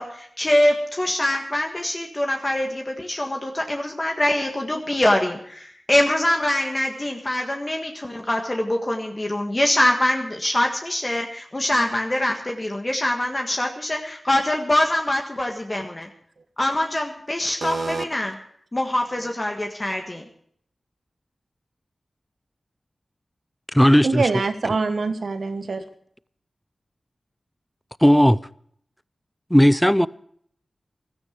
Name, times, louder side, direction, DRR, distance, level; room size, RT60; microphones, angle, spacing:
voice 1, 0.0-16.1 16.6-18.4 18.7-20.2, left 1 dB, 30° left, 1.6 m, -24 dB
voice 2, 17.6-18.0 24.0-25.8, right 4 dB, 75° right, 1.3 m, -25 dB
voice 3, 23.8-24.2 28.0-28.4 29.5-30.1, equal, 5° left, 0.5 m, -15 dB
16.0 x 13.5 x 5.1 m
wide cardioid pair, 60°, 0 cm